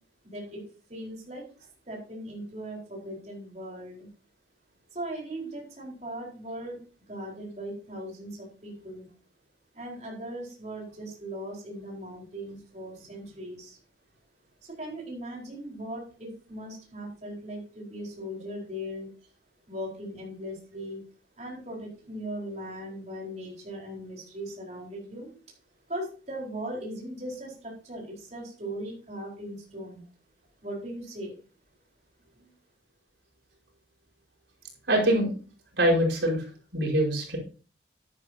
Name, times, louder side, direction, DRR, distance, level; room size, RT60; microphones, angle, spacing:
voice 1, 0.2-1.4 1.9-4.1 4.9-9.0 9.7-13.8 14.6-19.1 19.7-21.0 21.4-25.3 25.9-30.0 30.6-31.3 32.3-32.5, equal, 40° right, -2 dB, 4.5 m, -39 dB
voice 2, 34.9-35.3 35.8-36.5 36.7-37.4, right 1 dB, 90° right, -1 dB, 4.9 m, -23 dB
12.0 x 10.5 x 2.8 m, 0.37 s
head